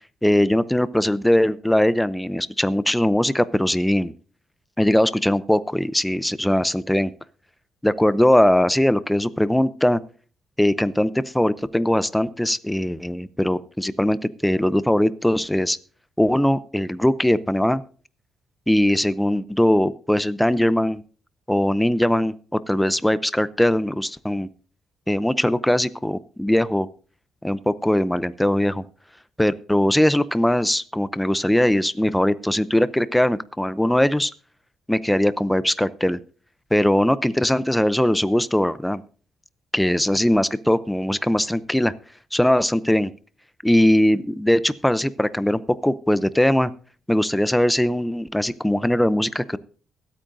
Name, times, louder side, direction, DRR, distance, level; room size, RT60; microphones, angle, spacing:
voice 1, 0.2-4.1 4.8-7.1 7.8-10.0 10.6-15.8 16.2-17.8 18.7-21.0 21.5-24.5 25.1-26.9 27.4-28.8 29.4-34.3 34.9-36.2 36.7-39.0 39.7-41.9 42.3-43.1 43.6-46.7 47.1-49.6, left 1 dB, 5° left, 16 dB, 0.5 m, -20 dB
23.5 x 8.6 x 2.6 m, 0.42 s
cardioid pair, 115°, 0 cm